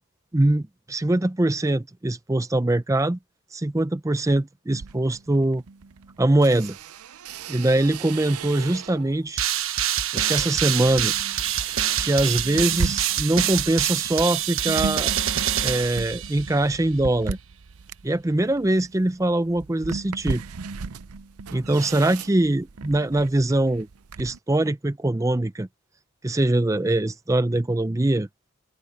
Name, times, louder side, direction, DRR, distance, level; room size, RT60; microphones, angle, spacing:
voice 1, 0.3-3.2 3.5-5.6 6.2-6.8 7.5-9.5 10.1-11.1 12.0-15.1 15.6-17.4 18.0-20.4 21.5-23.9 24.2-25.7 26.2-28.3, right 1 dB, 15° right, 0.5 m, -22 dB
sound 1, 4.7-9.2 9.7-24.4, right 5 dB, 85° right, 0.6 m, -37 dB
sound 2, 9.4-16.6, right 10 dB, 65° right, 1.3 m, -26 dB
head